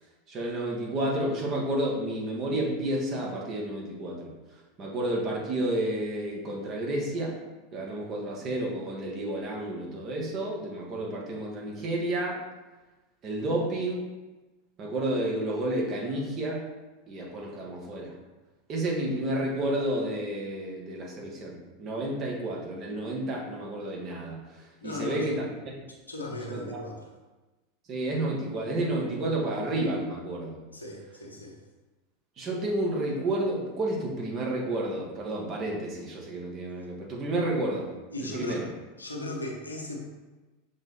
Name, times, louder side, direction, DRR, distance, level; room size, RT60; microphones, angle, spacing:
voice 1, 0.3-4.3 4.8-7.4 7.7-12.4 13.2-14.0 14.8-16.6 17.1-18.1 18.7-25.5 25.8-25.9 26.5-26.6 27.9-30.6 32.4-37.9 38.2-38.7, right 1 dB, 35° right, -2 dB, 1.6 m, -31 dB
voice 2, 24.8-25.3 26.1-27.1 30.7-31.6 38.1-38.7 39.0-40.0, left 2 dB, 80° left, 0 dB, 1.0 m, -37 dB
6.0 x 3.6 x 4.4 m, 1.2 s
figure-of-eight pair, 85°, 0 cm